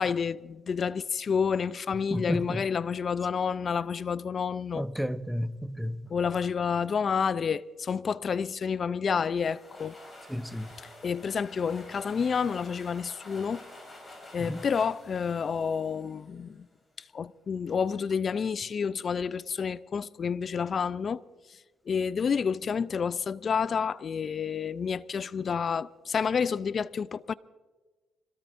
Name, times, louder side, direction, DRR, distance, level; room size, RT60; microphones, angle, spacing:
voice 1, 0.0-4.9 6.1-10.0 11.0-13.6 14.3-16.7 17.1-21.2 21.9-27.3, left 6 dB, 45° left, 0.4 m, -29 dB
voice 2, 2.1-2.6 4.7-6.0 10.3-10.7 14.4-14.6, equal, ahead, 0.7 m, -32 dB
sound 1, 9.2-16.6, left 1 dB, 20° left, 6.3 m, -50 dB
26.0 x 17.5 x 2.6 m
cardioid pair, 90°, 0 cm